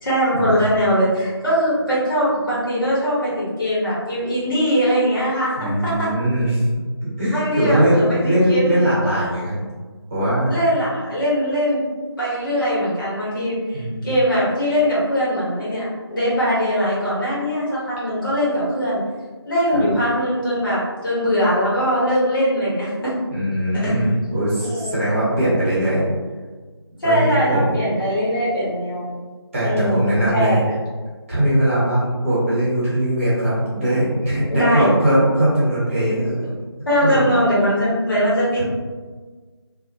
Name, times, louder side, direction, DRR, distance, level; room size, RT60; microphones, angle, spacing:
voice 1, 0.0-6.1 7.3-8.8 10.5-11.8 12.2-19.0 19.5-23.1 23.8-24.0 24.6-24.9 27.0-29.1 29.6-30.0 30.3-30.6 34.5-34.9 36.9-38.6, equal, 50° left, -9 dB, 1.2 m, -21 dB
voice 2, 5.6-6.6 7.0-9.6 10.1-10.5 13.7-14.1 19.7-19.8 23.3-26.0 27.0-27.2 27.5-27.8 29.5-30.6 31.3-36.4 37.0-37.2, right 1 dB, 30° right, -10 dB, 1.1 m, -20 dB
2.4 x 2.1 x 2.8 m, 1.4 s
figure-of-eight pair, 170°, 14 cm